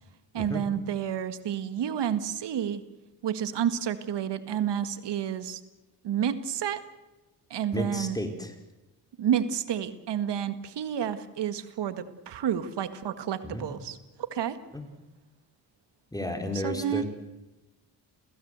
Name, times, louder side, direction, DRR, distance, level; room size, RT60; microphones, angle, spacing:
voice 1, 0.3-2.8 3.2-5.6 6.0-6.8 7.5-8.2 9.2-14.0 14.3-14.6 16.6-17.0, right 9 dB, 70° right, 12 dB, 1.8 m, -30 dB
voice 2, 7.7-8.5 13.4-13.7 14.7-14.8 16.1-17.0, left 1 dB, 10° left, 4 dB, 4.6 m, -32 dB
28.5 x 16.0 x 8.1 m, 1.0 s
cardioid pair, 70°, 43 cm